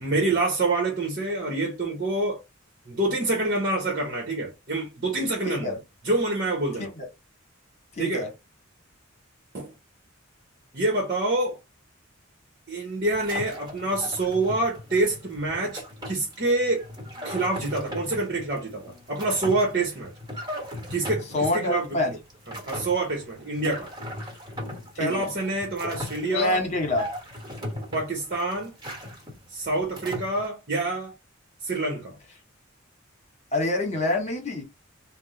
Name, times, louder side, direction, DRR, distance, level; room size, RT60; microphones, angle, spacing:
voice 1, 0.0-2.4 2.9-5.8 6.0-6.9 8.0-8.3 9.5-9.7 10.7-11.6 12.7-16.9 17.2-20.1 20.9-22.0 22.5-23.9 25.0-26.6 27.9-28.7 29.5-31.1 31.6-32.1, right 2 dB, 45° right, 1.1 m, -26 dB
voice 2, 5.5-5.8 6.8-7.1 7.9-8.3 21.3-22.1 24.9-25.3 26.2-27.1 33.5-34.6, left 2 dB, 35° left, 1.5 m, -26 dB
sound 1, 13.1-30.5, left 1 dB, 20° right, 1.6 m, -38 dB
3.5 x 2.3 x 4.1 m
head